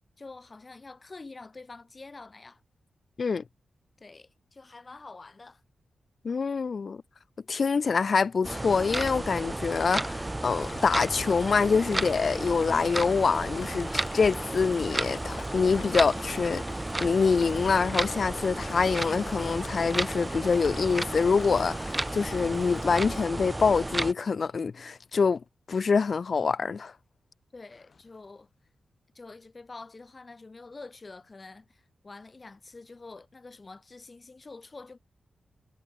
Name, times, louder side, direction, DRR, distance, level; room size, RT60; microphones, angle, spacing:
voice 1, 0.2-2.6 4.0-5.6 27.5-28.5 29.1-35.0, left 3 dB, 35° left, 5.8 m, -47 dB
voice 2, 6.2-7.0 7.5-16.6 17.0-25.4 25.7-26.9, left 5 dB, 55° left, 0.5 m, -25 dB
sound 1, 8.4-24.1, right 1 dB, 15° right, 1.1 m, -33 dB
sound 2, 10.6-23.3, left 8 dB, 85° left, 6.5 m, -49 dB
cardioid pair, 75°, 0 cm